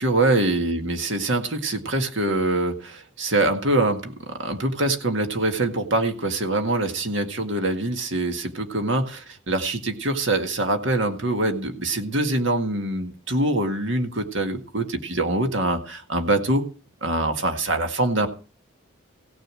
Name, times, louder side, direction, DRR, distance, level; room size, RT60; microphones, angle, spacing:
voice 1, 0.0-16.6 17.0-18.3, right 2 dB, 60° right, 5 dB, 1.9 m, -24 dB
16.5 x 6.6 x 7.6 m, 0.36 s
head